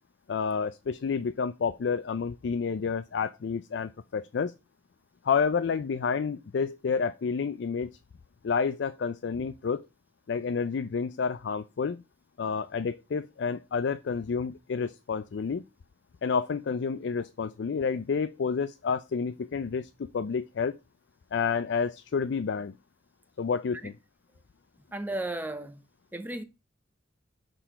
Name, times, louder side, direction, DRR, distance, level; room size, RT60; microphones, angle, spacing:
voice 1, 0.3-4.5 5.2-8.0 8.4-9.8 10.3-12.0 12.4-15.6 16.2-19.9 20.1-20.7 21.3-22.8 23.4-23.9, left 5 dB, 65° left, 0.4 m, -29 dB
voice 2, 24.9-25.8 26.1-26.4, right 1 dB, 10° right, 0.7 m, -34 dB
6.5 x 3.8 x 5.6 m
head